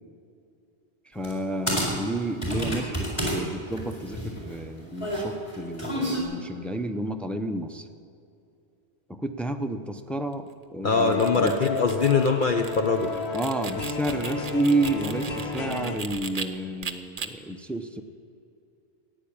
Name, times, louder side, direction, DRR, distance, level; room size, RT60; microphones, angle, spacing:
voice 1, 1.1-7.8 9.1-11.6 13.3-18.0, right 2 dB, ahead, 6 dB, 0.5 m, -30 dB
sound 1, 1.2-1.4 1.7-3.4 3.7-6.2, equal, 30° left, 4.2 m, -29 dB
voice 2, 10.8-13.1, left 4 dB, 50° left, 3 dB, 0.9 m, -22 dB
sound 2, 10.9-16.0, left 4 dB, 70° left, 1.8 m, -32 dB
sound 3, 10.9-16.5 16.8-17.3, right 5 dB, 40° right, 0.8 m, -38 dB
15.0 x 9.6 x 8.7 m, 2.6 s
omnidirectional pair, 1.1 m